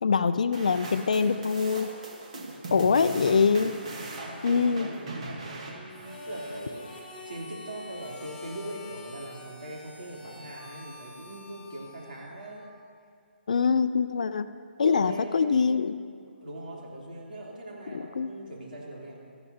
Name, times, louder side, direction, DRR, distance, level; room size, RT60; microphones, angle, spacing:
voice 1, 0.0-1.9 2.7-3.8 4.4-4.9 13.5-14.5 14.8-15.9 17.9-18.3, left 5 dB, 40° left, 12 dB, 0.3 m, -24 dB
sound 1, 0.5-7.1, right 2 dB, 35° right, 1.4 m, -40 dB
voice 2, 2.6-12.6 14.8-16.0 16.4-19.2, right 1 dB, 50° right, -4 dB, 3.2 m, -42 dB
Harmonica, 5.9-12.8, left 2 dB, 5° left, 2.2 m, -45 dB
17.5 x 13.5 x 2.8 m, 2.1 s
hypercardioid pair, 175°, 6 cm